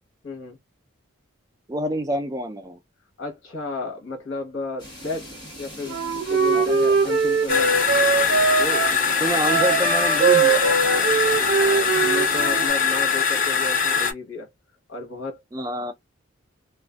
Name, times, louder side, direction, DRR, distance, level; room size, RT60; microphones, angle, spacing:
voice 1, 0.2-0.6 3.2-5.3 5.6-7.8 8.5-8.9 11.4-14.5 14.9-15.4, left 3 dB, 60° left, 1.0 m, -33 dB
voice 2, 1.7-2.8 6.5-6.7 9.2-11.2 15.5-15.9, equal, 15° right, 0.3 m, -27 dB
sound 1, 4.8-12.7, equal, 20° left, 1.1 m, -40 dB
Wind instrument woodwind instrument, 5.9-8.9 9.4-12.7, right 5 dB, 60° right, 0.7 m, -21 dB
sound 2, 7.5-14.1, left 6 dB, 40° left, 0.5 m, -22 dB
2.4 x 2.2 x 2.2 m
head